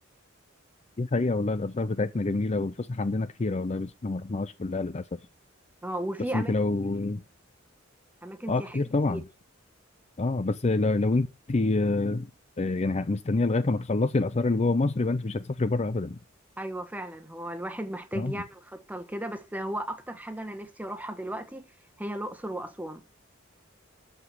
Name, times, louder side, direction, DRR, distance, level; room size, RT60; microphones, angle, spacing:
voice 1, 1.0-5.2 6.3-7.2 8.5-9.2 10.2-12.3 12.6-16.2 18.1-18.3, left 2 dB, 35° left, 0.5 m, -27 dB
voice 2, 5.8-6.5 8.2-8.8 9.1-9.2 16.6-21.7 22.0-23.0, right 1 dB, 10° right, 1.4 m, -35 dB
13.0 x 5.0 x 8.0 m
head